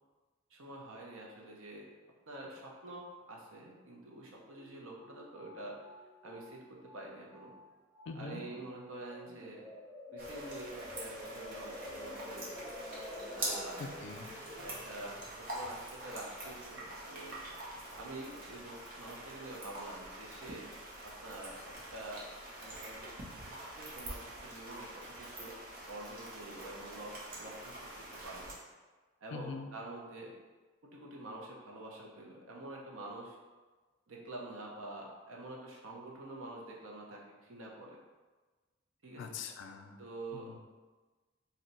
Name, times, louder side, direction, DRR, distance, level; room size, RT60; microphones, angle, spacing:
voice 1, 0.5-1.9 2.3-5.9 6.2-7.6 8.1-9.7 10.1-12.6 13.4-13.8 14.5-17.4 17.9-20.7 21.0-22.3 22.6-23.1 23.4-25.6 25.9-28.5 29.2-30.4 30.8-33.4 34.1-38.0 39.0-39.4 40.0-40.5, right 2 dB, 85° right, -1 dB, 0.6 m, -47 dB
sound 1, 5.0-7.1 7.3-7.6 7.9-8.5 8.9-15.8, left 1 dB, ahead, 0.4 m, -49 dB
voice 2, 8.1-8.4 13.8-14.3 29.3-29.7 39.2-40.0 40.3-40.6, left 5 dB, 60° left, 5 dB, 0.3 m, -43 dB
sound 2, 10.2-28.5, right 1 dB, 45° right, 0.7 m, -45 dB
2.7 x 2.1 x 4.0 m, 1.3 s
head